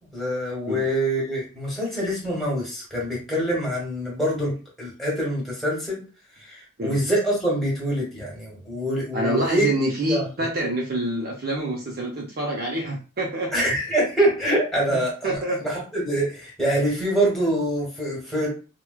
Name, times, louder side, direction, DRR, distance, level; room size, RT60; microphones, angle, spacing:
voice 1, 0.1-4.5 4.8-6.0 6.4-9.7 10.1-10.3 13.5-18.5, right 1 dB, ahead, -5 dB, 1.3 m, -25 dB
voice 2, 9.1-13.5 14.9-15.6, right 1 dB, 45° right, -1 dB, 0.6 m, -27 dB
4.5 x 2.3 x 2.3 m, 0.35 s
head